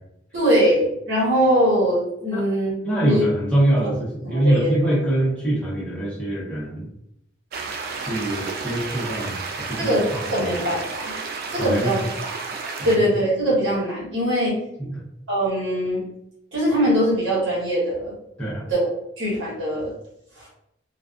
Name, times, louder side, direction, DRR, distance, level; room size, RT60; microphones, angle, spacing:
voice 1, 0.3-2.7 3.0-3.2 3.8-3.9 4.2-4.7 9.8-11.1 11.5-12.1 12.8-14.6 15.3-16.0 16.5-18.1 18.7-18.9 19.2-19.9, equal, 80° right, -7 dB, 1.1 m, -21 dB
voice 2, 2.8-6.9 7.9-10.6 11.6-12.0 12.8-13.0 14.8-15.0 18.4-18.7, right 1 dB, 5° left, -7 dB, 0.7 m, -24 dB
sound 1, 7.5-13.0, right 4 dB, 55° right, 0.3 m, -32 dB
2.4 x 2.3 x 2.3 m, 0.82 s
head